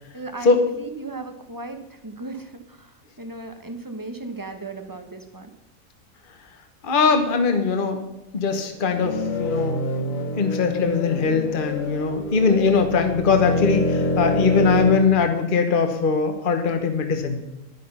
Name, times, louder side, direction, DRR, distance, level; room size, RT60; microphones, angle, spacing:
voice 1, 0.1-5.5, right 3 dB, 15° right, 7 dB, 1.0 m, -36 dB
voice 2, 6.8-8.0 8.3-17.4, left 5 dB, 35° left, 6 dB, 1.3 m, -21 dB
sound 1, 8.8-15.0, left 2 dB, 55° left, 3.0 m, -26 dB
11.0 x 11.0 x 5.6 m, 0.95 s
omnidirectional pair, 1.6 m